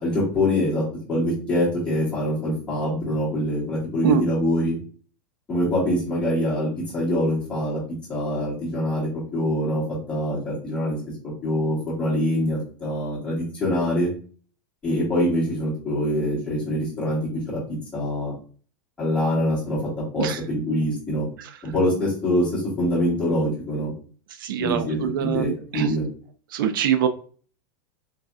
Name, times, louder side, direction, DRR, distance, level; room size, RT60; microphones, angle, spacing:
voice 1, 0.0-4.8 5.5-7.8 8.1-11.0 11.2-14.1 14.8-18.3 19.0-21.3 21.6-23.9 24.6-26.0, left 1 dB, 10° left, -7 dB, 1.6 m, -24 dB
voice 2, 24.3-25.9 26.5-27.1, right 9 dB, 70° right, 9 dB, 0.4 m, -24 dB
4.0 x 3.1 x 2.3 m, 0.41 s
supercardioid pair, 180°, 11 cm